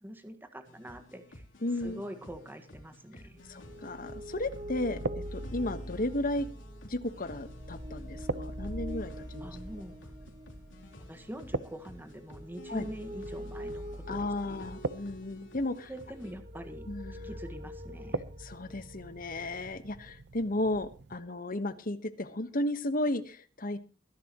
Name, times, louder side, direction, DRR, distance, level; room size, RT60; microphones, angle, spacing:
voice 1, 0.0-1.4 1.8-3.4 9.4-10.0 11.1-14.6 15.9-16.8 17.2-18.2, equal, 10° right, 7 dB, 1.6 m, -44 dB
sound 1, 0.6-16.3, left 1 dB, 85° left, 3.4 m, -52 dB
voice 2, 1.6-2.0 3.5-6.5 6.8-9.6 12.7-12.9 14.1-15.9 16.9-17.3 18.4-23.8, left 1 dB, 50° left, 11 dB, 1.3 m, -34 dB
sound 2, 3.3-21.2, right 3 dB, 65° right, 0.8 m, -44 dB
sound 3, 3.4-20.1, equal, 40° right, 1.8 m, -44 dB
22.5 x 11.0 x 3.0 m, 0.34 s
head